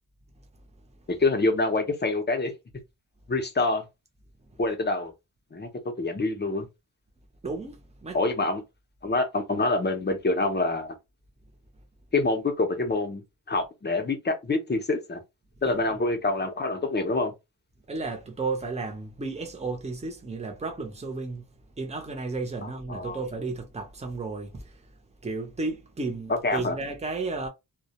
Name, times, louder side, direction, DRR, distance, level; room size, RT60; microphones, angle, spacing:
voice 1, 1.1-2.5 3.3-3.8 4.6-5.1 5.5-5.7 6.0-6.7 8.1-8.6 9.0-10.9 12.1-13.2 13.5-15.2 15.6-17.3 22.6-23.2 26.4-26.8, left 2 dB, 25° left, 0.6 m, -26 dB
voice 2, 7.4-8.2 15.6-15.8 17.9-21.5 21.8-24.7 25.2-27.5, right 3 dB, 15° right, 0.6 m, -33 dB
2.2 x 2.1 x 2.8 m
wide cardioid pair, 135°, 41 cm